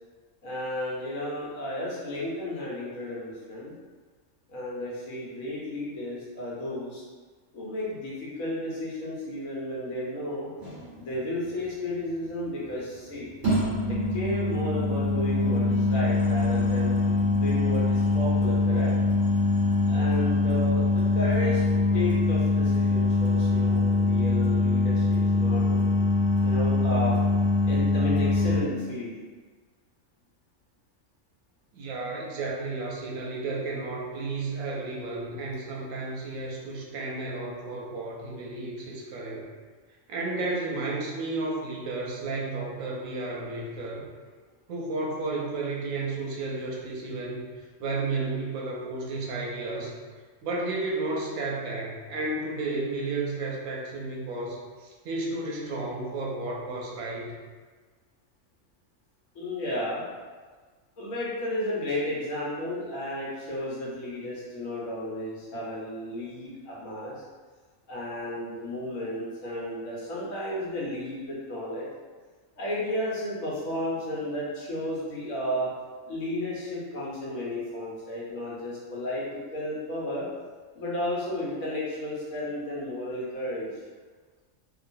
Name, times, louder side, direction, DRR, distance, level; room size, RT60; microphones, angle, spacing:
voice 1, 0.4-3.7 4.5-7.0 7.5-10.5 10.9-13.3 13.9-17.0 17.3-18.9 19.9-25.9 26.4-27.2 27.6-29.2 59.3-60.0 61.0-67.1 67.9-71.9 72.6-75.7 76.0-79.2 79.5-80.2 80.7-83.7, left 1 dB, 85° left, -6 dB, 1.2 m, -33 dB
sound 1, 10.6-10.8 13.4-28.6, left 3 dB, 70° right, 1.2 m, -23 dB
voice 2, 31.7-39.5 40.1-44.1 44.7-47.5 47.8-49.9 50.4-57.3, right 3 dB, 90° right, -2 dB, 1.0 m, -32 dB
3.0 x 2.3 x 2.5 m, 1.4 s
omnidirectional pair, 1.4 m